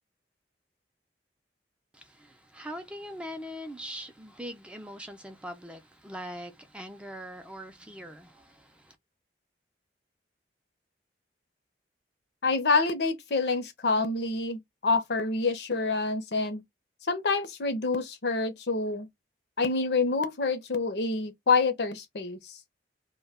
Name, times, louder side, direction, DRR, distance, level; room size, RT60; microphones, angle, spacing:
voice 1, 2.5-8.4, equal, 5° right, 0.4 m, -41 dB
voice 2, 12.4-16.6 17.1-19.1 19.6-22.6, left 3 dB, 65° left, 0.6 m, -27 dB
2.2 x 2.2 x 3.3 m
head